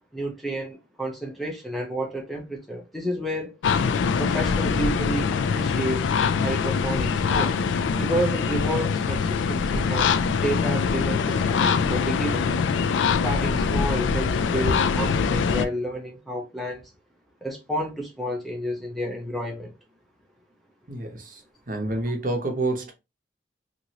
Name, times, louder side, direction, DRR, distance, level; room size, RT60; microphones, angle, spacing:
voice 1, 0.1-3.6 4.2-6.1 6.4-7.6 8.0-12.6 13.2-16.8 17.4-19.7, right 1 dB, ahead, 0.6 m, -30 dB
sound 1, 3.6-15.7, left 5 dB, 85° left, 0.3 m, -23 dB
voice 2, 20.9-22.9, right 2 dB, 45° right, 0.8 m, -28 dB
2.9 x 2.5 x 2.7 m
head